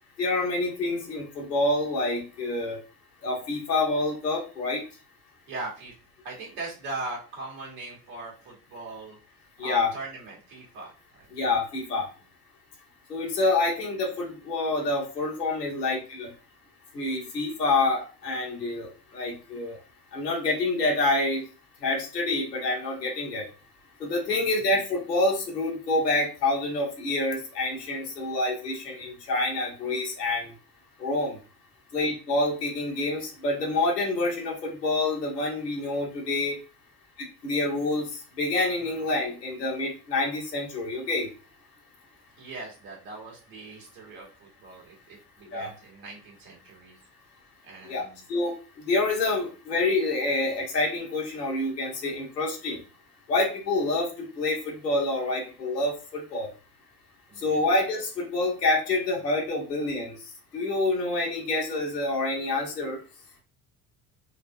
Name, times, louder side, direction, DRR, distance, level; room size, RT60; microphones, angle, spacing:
voice 1, 0.2-2.8 3.2-4.8 9.6-9.9 11.4-12.1 13.1-16.3 16.9-19.8 20.1-21.4 21.8-23.5 24.0-30.5 31.0-31.4 31.9-36.6 37.4-41.3 45.5-45.7 47.9-48.0 48.3-52.8 53.3-56.5 57.4-60.1 60.5-63.0, left 2 dB, 90° left, -2 dB, 1.3 m, -27 dB
voice 2, 5.5-5.9 6.2-9.2 9.6-10.9 11.2-11.3 24.3-24.6 38.8-39.0 42.4-47.0 47.6-48.3 57.3-57.7, right 3 dB, 70° right, -3 dB, 2.0 m, -40 dB
4.7 x 2.7 x 2.7 m, 0.35 s
hypercardioid pair, 65°, 47 cm